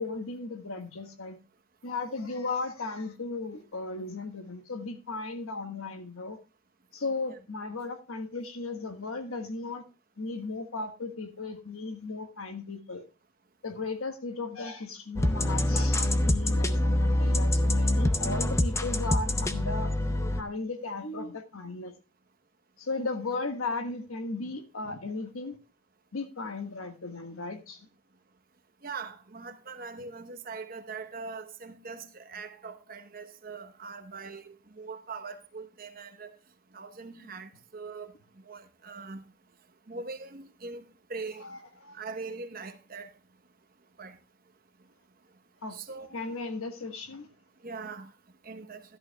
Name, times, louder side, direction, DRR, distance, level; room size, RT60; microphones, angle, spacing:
voice 1, 0.0-1.4 1.8-6.4 6.9-9.8 10.2-13.0 13.6-21.9 22.8-25.6 26.1-27.9 41.4-42.0 45.6-45.8 46.1-47.3, left 3 dB, 90° left, 1.4 m, -36 dB
sound 1, 15.2-20.4, left 1 dB, 15° left, 0.5 m, -25 dB
voice 2, 28.8-36.3 36.7-38.1 38.5-39.2 39.9-41.4 41.9-43.1 44.0-44.1 45.7-46.1 47.6-48.1 48.4-48.8, right 4 dB, 45° right, 0.9 m, -41 dB
13.0 x 11.5 x 2.2 m
head